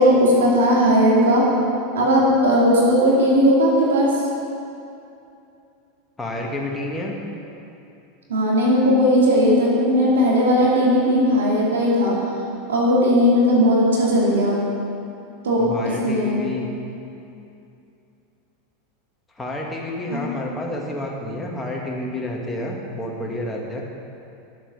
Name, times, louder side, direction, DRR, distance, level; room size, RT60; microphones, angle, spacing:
voice 1, 0.0-1.4 1.9-4.1 8.3-12.2 12.7-14.6 15.4-15.6 16.0-16.4 20.1-20.2, equal, 85° right, -5 dB, 2.7 m, -17 dB
voice 2, 6.2-7.1 15.6-16.7 19.4-23.8, left 1 dB, 10° left, -2 dB, 2.0 m, -29 dB
11.0 x 7.4 x 5.6 m, 2.6 s
hypercardioid pair, 95°, 0 cm